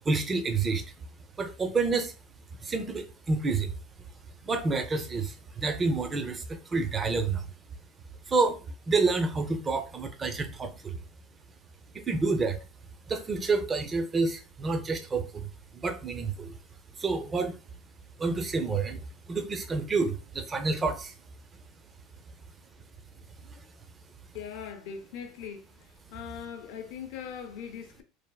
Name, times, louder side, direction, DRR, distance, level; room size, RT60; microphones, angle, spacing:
voice 1, 0.1-0.8 1.4-2.1 2.6-3.7 4.4-7.5 8.3-8.6 8.9-11.0 12.1-12.6 13.1-16.6 17.0-17.5 18.2-19.0 19.3-21.1, right 4 dB, 20° right, 0.4 m, -28 dB
voice 2, 24.3-25.7 26.1-28.0, left 7 dB, 70° left, 0.6 m, -40 dB
3.2 x 2.0 x 2.3 m
supercardioid pair, 120°, 0 cm